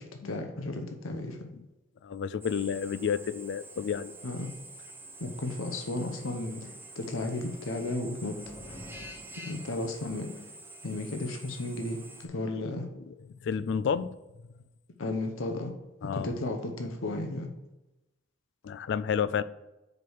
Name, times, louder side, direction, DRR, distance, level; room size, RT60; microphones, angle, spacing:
voice 1, 0.0-1.5 4.2-4.5 5.2-8.4 9.5-10.4 10.8-12.9 15.0-15.7 16.0-17.5, left 2 dB, 80° left, 0.8 m, -34 dB
voice 2, 2.0-4.2 13.1-13.2 13.4-14.1 16.0-16.3 18.6-19.4, left 7 dB, 60° left, 0.3 m, -30 dB
Drill, 2.4-12.3, right 2 dB, 10° right, 0.7 m, -47 dB
sound 1, 7.5-10.2, left 1 dB, 20° left, 1.4 m, -50 dB
5.2 x 4.7 x 6.3 m
head